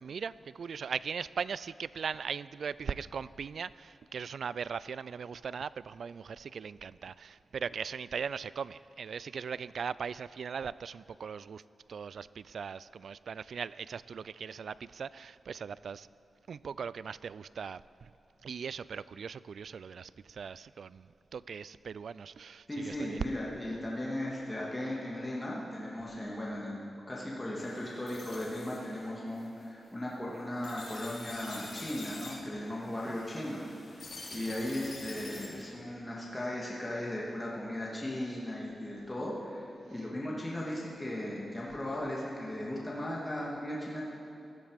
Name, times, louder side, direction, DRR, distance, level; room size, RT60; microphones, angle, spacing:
voice 1, 0.0-11.6 11.9-16.1 16.5-18.1 18.4-23.3 33.1-33.3 34.4-34.5, right 6 dB, 75° right, 18 dB, 0.3 m, -39 dB
voice 2, 22.7-26.8 27.1-34.0 34.3-44.0, left 1 dB, 15° left, -5 dB, 2.5 m, -37 dB
sound 1, 27.6-35.7, left 2 dB, 55° left, 3.6 m, -47 dB
17.0 x 13.5 x 5.2 m, 2.9 s
wide cardioid pair, 95°, 0 cm